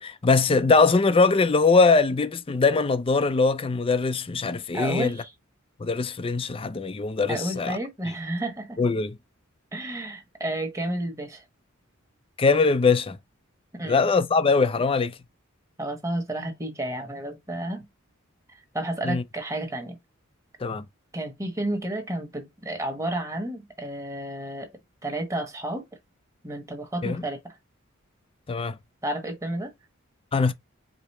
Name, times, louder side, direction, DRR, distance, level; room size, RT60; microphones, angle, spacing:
voice 1, 0.0-5.2 5.8-7.8 8.8-9.2 12.4-13.2 13.8-15.2 19.0-19.2 20.6-20.8 27.0-27.2 28.5-28.8 30.3-30.5, left 4 dB, 25° left, 0.4 m, -22 dB
voice 2, 4.7-5.3 7.3-8.8 9.7-11.4 13.7-14.1 15.8-17.9 18.7-20.0 21.1-24.7 25.0-25.9 26.4-27.6 29.0-29.7, right 1 dB, 15° right, 1.1 m, -31 dB
4.9 x 2.0 x 4.1 m
head